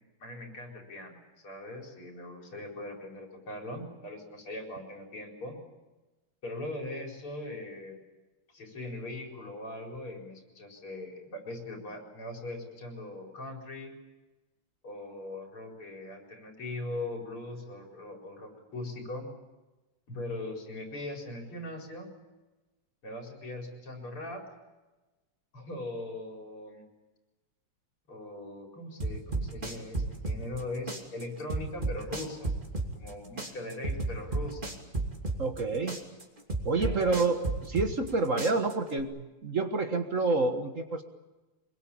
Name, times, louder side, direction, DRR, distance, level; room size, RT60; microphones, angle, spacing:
voice 1, 0.2-5.6 6.4-8.0 8.5-14.0 14.8-19.3 20.1-22.1 23.0-24.4 25.5-26.8 28.1-32.5 33.0-34.7 36.8-37.2, left 1 dB, 85° left, 1 dB, 5.5 m, -40 dB
sound 1, 29.0-30.6 30.9-33.1 33.4-35.6 35.9-38.1 38.4-39.0, right 3 dB, 25° right, 2.9 m, -32 dB
voice 2, 35.4-36.0 36.7-41.0, right 3 dB, 40° right, 6 dB, 1.6 m, -28 dB
25.0 x 22.0 x 8.7 m, 1.1 s
omnidirectional pair, 2.3 m